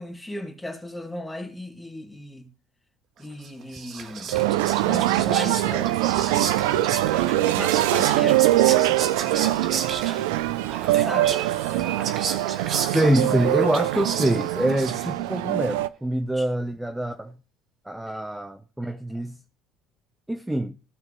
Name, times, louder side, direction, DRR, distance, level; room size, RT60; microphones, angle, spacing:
voice 1, 0.0-2.5 3.2-4.4 4.8-6.5 7.6-8.5 11.0-11.4 16.3-16.5 18.1-18.2, left 1 dB, 10° left, 2.0 m, -36 dB
Whispering, 3.4-15.4, right 6 dB, 50° right, 1.4 m, -33 dB
sound 1, 4.3-15.9, right 15 dB, 85° right, 0.4 m, -23 dB
voice 2, 12.9-17.3 17.8-19.4 20.3-20.7, right 1 dB, 5° right, 0.7 m, -25 dB
15.5 x 5.9 x 3.1 m
supercardioid pair, 80°, 0 cm